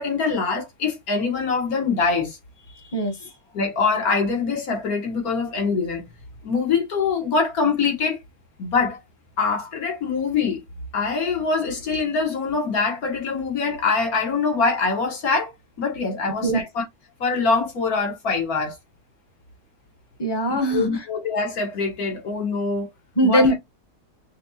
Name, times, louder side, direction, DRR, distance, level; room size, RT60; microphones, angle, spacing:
voice 1, 0.0-2.4 3.5-6.1 6.4-8.2 8.6-9.0 9.4-10.6 10.9-15.5 15.8-16.8 17.2-18.8 20.5-22.9 23.2-23.5, left 4 dB, 70° left, 1.8 m, -24 dB
voice 2, 2.7-3.3 16.4-16.6 20.2-20.9 23.2-23.5, right 1 dB, 20° left, 0.8 m, -21 dB
6.0 x 2.4 x 2.7 m
omnidirectional pair, 1.6 m